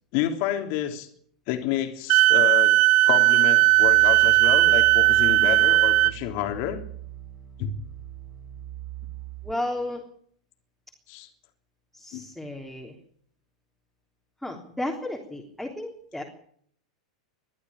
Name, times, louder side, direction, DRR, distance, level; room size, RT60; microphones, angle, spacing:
voice 1, 0.1-1.1 1.5-2.8 3.0-6.8 7.6-7.7 11.1-11.3 12.1-12.2, left 11 dB, 45° left, 6 dB, 3.3 m, -29 dB
Wind instrument woodwind instrument, 2.1-6.1, right 18 dB, 40° right, 0.8 m, -17 dB
sound 1, 3.6-9.5, right 13 dB, 20° right, 4.7 m, -41 dB
voice 2, 9.4-10.0 11.9-13.0 14.4-16.2, left 1 dB, ahead, 0 dB, 3.5 m, -33 dB
22.0 x 13.5 x 8.8 m, 0.63 s
figure-of-eight pair, 90°, 3 cm